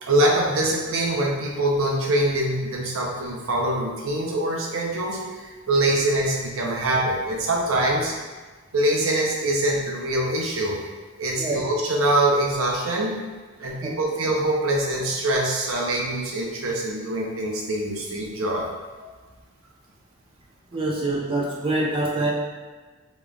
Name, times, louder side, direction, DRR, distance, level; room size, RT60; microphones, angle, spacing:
voice 1, 0.0-8.1 8.7-10.8 11.2-13.2 13.6-18.7, right 1 dB, 85° right, -2 dB, 0.8 m, -24 dB
voice 2, 20.7-22.3, right 2 dB, 25° right, -3 dB, 0.5 m, -25 dB
5.0 x 3.1 x 2.4 m, 1.3 s
head